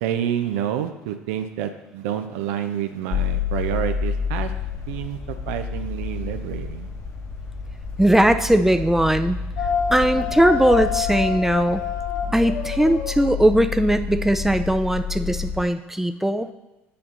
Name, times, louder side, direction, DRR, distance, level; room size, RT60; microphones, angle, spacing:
voice 1, 0.0-4.5 4.9-6.9, right 10 dB, 70° right, 8 dB, 0.6 m, -28 dB
sound 1, 3.1-15.6, left 6 dB, 40° left, 1.1 m, -30 dB
voice 2, 8.0-9.4 9.9-11.8 12.3-16.5, right 1 dB, 5° right, 9 dB, 0.5 m, -19 dB
sound 2, 9.6-14.5, left 8 dB, 60° left, 1.0 m, -28 dB
8.5 x 2.9 x 5.3 m, 1.0 s
hypercardioid pair, 65°, 7 cm